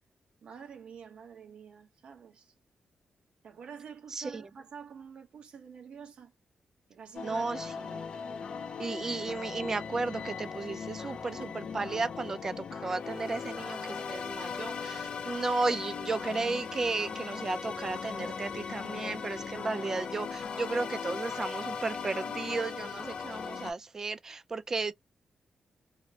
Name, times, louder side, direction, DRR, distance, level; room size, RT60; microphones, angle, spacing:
voice 1, 0.4-2.5 3.4-6.3 6.9-7.5, right 7 dB, 55° right, 0.9 m, -48 dB
voice 2, 4.1-4.4 7.2-8.0 8.8-24.9, right 3 dB, 25° right, 0.3 m, -34 dB
sound 1, 7.1-23.7, left 6 dB, 50° left, 0.5 m, -38 dB
2.6 x 2.1 x 2.7 m
wide cardioid pair, 180°, 2 cm